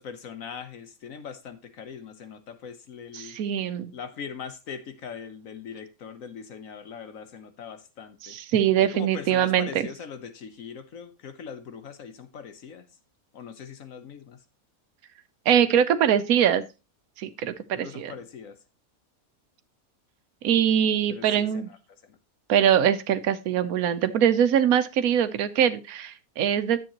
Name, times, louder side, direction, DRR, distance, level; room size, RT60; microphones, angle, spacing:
voice 1, 0.0-3.4 3.9-8.4 8.8-12.8 13.3-14.4 17.8-18.6 21.1-21.8 22.0-22.2, left 6 dB, 70° left, 1.3 m, -41 dB
voice 2, 3.1-3.9 8.3-9.7 15.5-16.6 17.2-18.1 20.4-21.7 22.5-26.8, right 9 dB, 80° right, 1.2 m, -22 dB
10.0 x 7.6 x 2.9 m
omnidirectional pair, 1.5 m